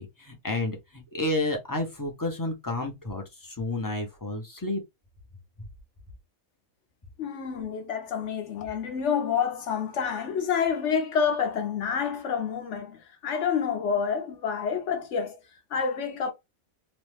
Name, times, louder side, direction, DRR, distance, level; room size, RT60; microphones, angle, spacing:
voice 1, 0.0-4.8, left 2 dB, 25° left, 0.4 m, -31 dB
voice 2, 7.2-15.4 15.7-16.3, left 6 dB, 65° left, 1.0 m, -28 dB
3.1 x 2.1 x 3.2 m
omnidirectional pair, 1.5 m